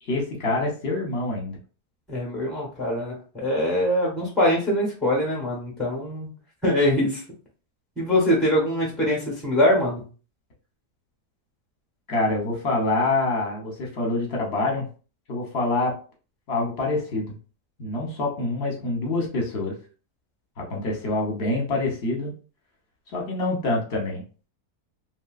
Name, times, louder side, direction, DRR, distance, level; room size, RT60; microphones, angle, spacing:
voice 1, 0.0-1.6 12.1-14.9 15.3-16.0 16.5-17.4 17.8-19.8 20.6-22.3 23.1-24.2, left 2 dB, 45° left, 0 dB, 1.0 m, -26 dB
voice 2, 2.1-6.3 6.6-7.2 8.0-10.0, left 1 dB, ahead, -4 dB, 0.6 m, -23 dB
3.1 x 2.6 x 2.3 m, 0.37 s
omnidirectional pair, 1.8 m